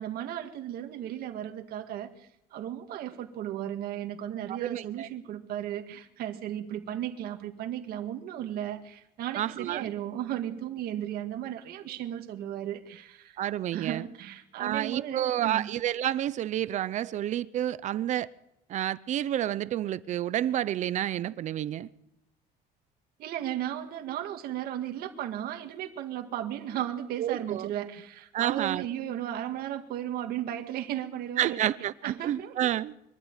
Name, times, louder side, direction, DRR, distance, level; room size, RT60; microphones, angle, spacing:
voice 1, 0.0-13.4 13.7-15.7 23.2-31.6 32.0-32.7, right 11 dB, 65° right, 1.9 m, -35 dB
voice 2, 4.5-5.1 9.4-9.9 13.4-14.1 14.6-18.3 18.7-21.9 27.2-27.7 28.3-28.8 31.4-32.9, right 12 dB, 45° right, 0.7 m, -29 dB
23.5 x 13.5 x 9.1 m
cardioid pair, 155°, 17 cm